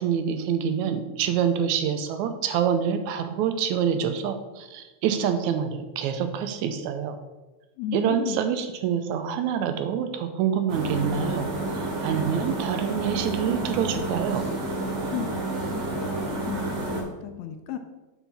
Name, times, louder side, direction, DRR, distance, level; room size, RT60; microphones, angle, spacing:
voice 1, 0.0-7.2 7.9-11.5 11.7-14.4, right 8 dB, 85° right, 8 dB, 2.0 m, -26 dB
voice 2, 7.8-8.4 15.1-15.4 15.7-17.8, left 10 dB, 80° left, 7 dB, 1.7 m, -35 dB
sound 1, 10.7-17.0, right 2 dB, 70° right, 3.2 m, -30 dB
7.1 x 5.6 x 4.2 m, 1.1 s
omnidirectional pair, 3.3 m